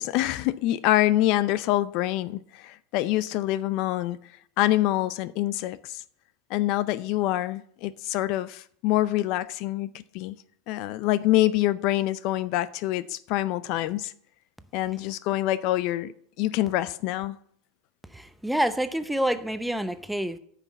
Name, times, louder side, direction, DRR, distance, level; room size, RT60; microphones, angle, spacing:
voice 1, 0.0-4.2 4.6-6.0 6.5-9.9 10.1-10.4 10.7-14.1 14.7-17.4, left 15 dB, 55° left, 0.5 m, -26 dB
voice 2, 18.1-20.4, right 1 dB, ahead, 0.7 m, -27 dB
9.6 x 5.8 x 7.3 m
supercardioid pair, 115°, 0 cm